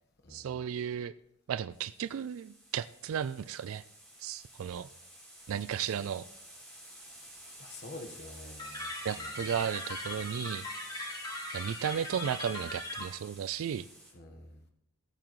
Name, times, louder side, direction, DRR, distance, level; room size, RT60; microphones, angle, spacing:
voice 1, 0.3-1.1 1.5-3.8 4.2-4.9 5.5-6.3 9.0-10.6 11.5-13.9, right 8 dB, 65° right, 15 dB, 0.3 m, -34 dB
sound 1, 1.7-14.1, right 1 dB, 5° left, 3.6 m, -51 dB
voice 2, 7.6-8.9 9.1-9.5 14.1-14.6, left 2 dB, 50° left, 4 dB, 1.3 m, -47 dB
sound 2, 8.6-13.0, left 1 dB, 20° left, 3.6 m, -40 dB
16.0 x 8.8 x 3.1 m, 0.78 s
head